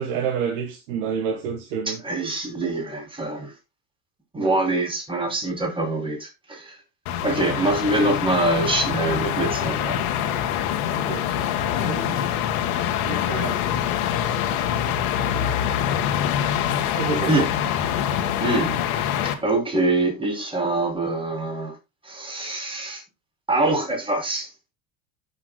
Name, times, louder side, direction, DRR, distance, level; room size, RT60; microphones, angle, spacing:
voice 1, 0.0-2.0 4.3-4.6 11.0-11.3 11.7-12.2 13.0-13.6 16.9-17.5, right 6 dB, 80° right, 1.5 m, -29 dB
voice 2, 1.9-3.5 4.3-6.8 7.2-10.0 17.3-17.5 18.4-18.8 19.2-21.8 22.0-23.0 23.5-24.5, right 2 dB, 10° right, 3.1 m, -24 dB
sound 1, 7.1-19.3, left 9 dB, 80° left, 1.5 m, -25 dB
15.5 x 5.8 x 2.2 m
supercardioid pair, 95°, 42 cm